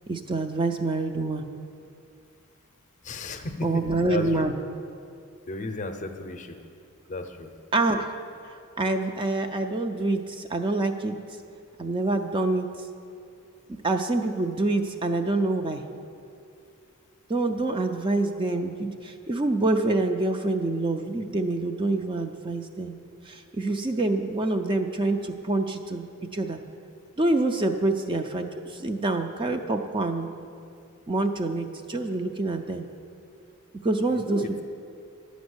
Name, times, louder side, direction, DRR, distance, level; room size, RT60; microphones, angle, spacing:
voice 1, 0.1-1.5 3.6-4.5 7.7-8.2 8.8-11.2 11.8-12.7 13.8-15.8 17.3-23.0 23.3-26.6 27.2-30.3 31.1-32.9 33.8-34.6, right 2 dB, 25° right, 5 dB, 0.4 m, -26 dB
voice 2, 3.0-4.3 5.5-6.6 7.1-7.5 34.1-34.5, left 2 dB, 35° left, 6 dB, 0.6 m, -34 dB
11.0 x 5.2 x 7.9 m, 2.4 s
head